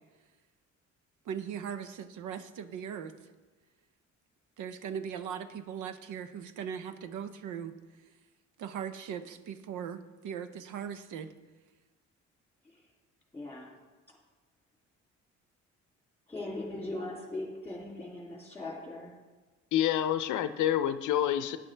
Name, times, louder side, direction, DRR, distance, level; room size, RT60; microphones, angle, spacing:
voice 1, 1.3-3.1 4.6-7.7 8.6-11.3, right 8 dB, 80° right, 11 dB, 0.7 m, -39 dB
voice 2, 13.3-13.8 16.3-19.2, left 2 dB, 5° left, -2 dB, 2.7 m, -39 dB
voice 3, 19.7-21.6, left 11 dB, 80° left, 12 dB, 0.6 m, -27 dB
12.0 x 9.3 x 3.3 m, 1.2 s
cardioid pair, 90°, 30 cm